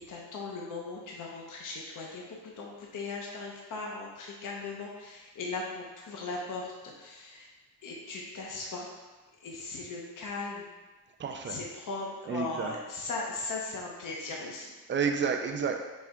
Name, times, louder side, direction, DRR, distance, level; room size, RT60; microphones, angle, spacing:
voice 1, 0.1-7.5 7.8-8.9 9.4-10.7 11.4-14.7, left 3 dB, 50° left, -2 dB, 0.7 m, -38 dB
voice 2, 11.2-11.6 12.3-12.7 14.9-15.8, right 6 dB, 30° right, 4 dB, 0.4 m, -30 dB
4.5 x 3.3 x 3.6 m, 1.2 s
wide cardioid pair, 135°, 40 cm